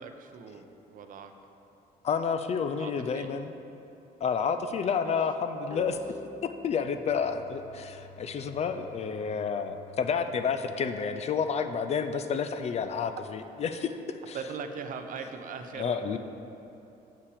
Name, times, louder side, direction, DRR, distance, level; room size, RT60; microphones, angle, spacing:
voice 1, 0.0-1.3 2.8-3.3 5.0-5.2 5.9-6.0 14.3-16.2, right 5 dB, 55° right, 7 dB, 0.6 m, -40 dB
voice 2, 2.0-3.5 4.2-6.0 6.4-14.4 15.8-16.2, left 6 dB, 40° left, 9 dB, 0.4 m, -30 dB
sound 1, 5.7-9.2, equal, 20° right, 0.9 m, -48 dB
Bowed string instrument, 6.8-11.7, left 2 dB, 90° left, 1.8 m, -54 dB
6.8 x 5.8 x 4.8 m, 2.9 s
cardioid pair, 110°, 17 cm